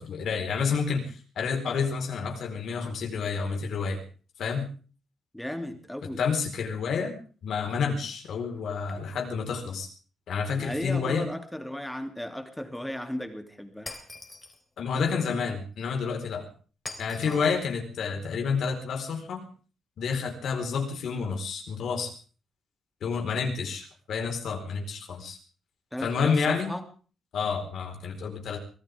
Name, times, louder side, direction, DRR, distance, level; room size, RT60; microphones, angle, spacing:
voice 1, 0.0-4.0 4.4-4.7 6.2-9.9 10.3-11.3 14.8-16.5 17.0-19.4 20.0-22.1 23.0-25.4 26.0-26.7 27.3-28.6, left 5 dB, 65° left, 3 dB, 4.4 m, -29 dB
voice 2, 5.3-6.2 10.6-13.9 17.2-17.5 25.9-26.8, left 1 dB, 5° left, 6 dB, 2.8 m, -35 dB
Shatter, 13.9-14.6 16.9-17.6, left 3 dB, 20° left, 3.6 m, -42 dB
24.5 x 16.0 x 3.6 m, 0.39 s
cardioid pair, 110°, 0 cm